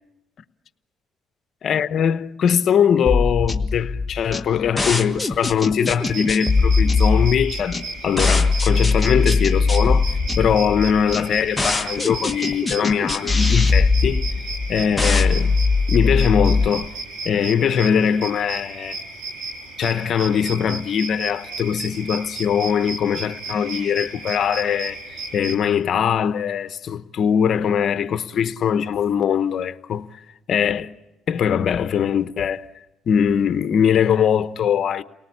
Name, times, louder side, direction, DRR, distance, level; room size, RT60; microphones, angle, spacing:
voice 1, 1.6-10.1 10.4-14.3 14.7-15.5 15.9-16.9 17.2-19.0 19.8-30.1 30.5-30.9 31.3-32.6 33.1-35.0, left 8 dB, 60° left, 1.0 m, -21 dB
sound 1, 3.1-16.7, left 4 dB, 10° left, 1.7 m, -20 dB
sound 2, 6.0-25.5, right 3 dB, 80° right, 4.8 m, -34 dB
29.5 x 18.5 x 8.6 m
supercardioid pair, 80°, 0 cm